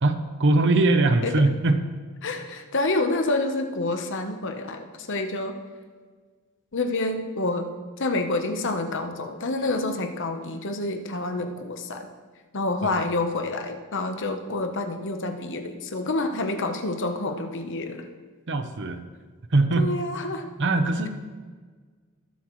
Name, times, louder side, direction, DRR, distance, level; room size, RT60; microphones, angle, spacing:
voice 1, 0.0-1.8 12.8-12.9 18.5-19.0 19.5-19.9 20.6-21.1, right 2 dB, 55° right, 8 dB, 0.8 m, -21 dB
voice 2, 2.2-5.5 6.7-7.6 8.0-12.1 12.5-18.1 19.8-20.5, left 2 dB, 55° left, 6 dB, 1.0 m, -28 dB
20.0 x 7.7 x 3.2 m, 1.5 s
head